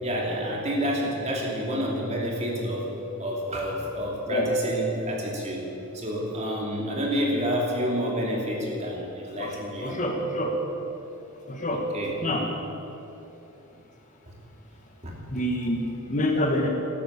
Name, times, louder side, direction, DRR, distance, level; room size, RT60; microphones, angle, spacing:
voice 1, 0.0-2.9 3.2-5.6 5.9-10.0 11.9-12.2 14.3-14.4 15.0-15.2, equal, 30° right, -2 dB, 2.8 m, -29 dB
voice 2, 9.8-10.5 11.5-11.8 12.2-12.4 15.3-16.7, left 1 dB, 35° left, 2 dB, 1.5 m, -26 dB
13.0 x 12.0 x 8.4 m, 3.0 s
head